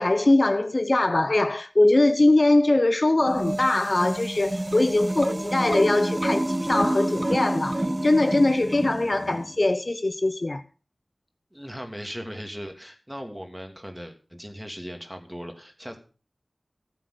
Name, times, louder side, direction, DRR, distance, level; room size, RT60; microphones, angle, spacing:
voice 1, 0.0-10.6, left 2 dB, 50° left, 0.8 m, -22 dB
sound 1, 3.2-9.5, right 1 dB, 30° right, 0.9 m, -28 dB
voice 2, 11.5-16.0, equal, 10° right, 3.0 m, -38 dB
14.5 x 7.6 x 6.7 m
wide cardioid pair, 55°, 0 cm